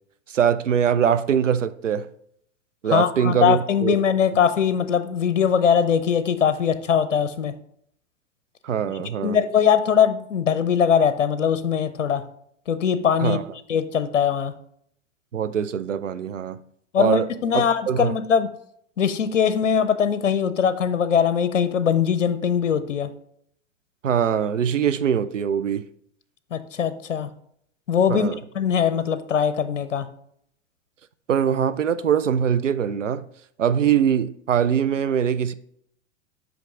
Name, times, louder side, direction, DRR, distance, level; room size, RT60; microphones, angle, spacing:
voice 1, 0.3-2.1 2.8-4.0 8.6-9.4 13.2-13.4 15.3-16.6 17.0-17.3 17.5-18.1 24.0-25.8 28.1-28.4 31.3-33.3 33.6-35.5, right 8 dB, 85° right, 0.5 m, -22 dB
voice 2, 2.9-7.5 9.2-12.2 12.7-13.4 13.7-14.5 16.9-18.5 19.0-23.1 26.5-27.3 27.9-28.3 28.5-30.1, left 7 dB, 80° left, 0.6 m, -21 dB
5.8 x 5.3 x 3.5 m
figure-of-eight pair, 95°, 37 cm